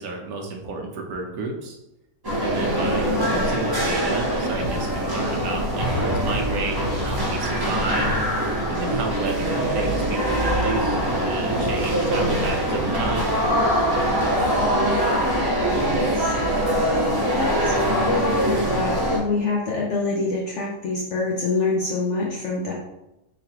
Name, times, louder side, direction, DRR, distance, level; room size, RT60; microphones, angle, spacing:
voice 1, 0.0-1.8 2.4-8.3 8.7-13.3, right 3 dB, 70° right, 1 dB, 1.0 m, -32 dB
sound 1, 2.2-19.2, equal, 30° right, 0.4 m, -23 dB
voice 2, 2.7-3.5 14.9-16.7 17.2-22.7, left 3 dB, 60° left, -3 dB, 0.7 m, -27 dB
3.9 x 3.2 x 2.8 m, 0.91 s
omnidirectional pair, 1.8 m